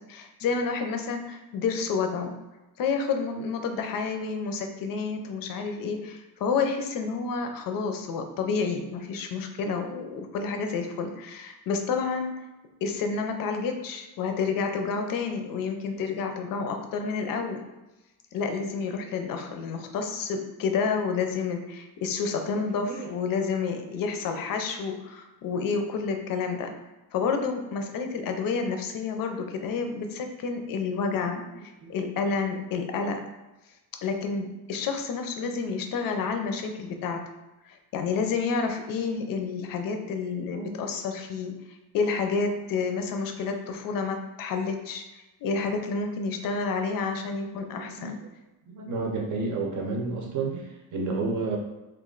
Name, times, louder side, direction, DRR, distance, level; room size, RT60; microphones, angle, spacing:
voice 1, 0.0-2.4 2.8-12.3 12.8-17.6 18.3-26.7 27.1-33.2 34.0-37.2 37.6-45.0 45.4-48.2, left 5 dB, 60° left, 5 dB, 0.5 m, -29 dB
voice 2, 31.6-31.9 35.4-35.5 36.2-36.5 40.5-40.9 47.7-48.3 48.7-51.6, right 3 dB, 50° right, 1 dB, 0.7 m, -32 dB
3.1 x 2.4 x 3.7 m, 1.1 s
cardioid pair, 180°, 39 cm